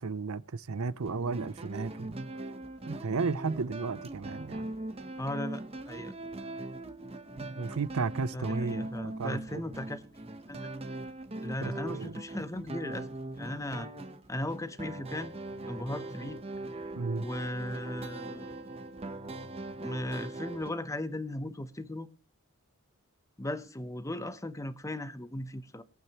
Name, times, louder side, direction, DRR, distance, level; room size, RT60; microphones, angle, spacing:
voice 1, 0.0-2.3 2.9-4.7 7.4-9.6 11.6-12.2 16.9-17.3, right 4 dB, 80° right, 0.6 m, -34 dB
sound 1, 1.0-20.7, right 2 dB, 30° right, 1.0 m, -41 dB
voice 2, 5.2-6.1 8.3-10.2 10.5-10.6 11.4-13.1 13.3-13.9 14.3-15.3 15.7-16.4 17.2-18.6 19.8-22.1 23.4-25.8, left 1 dB, 15° left, 0.8 m, -37 dB
21.5 x 8.9 x 3.0 m
head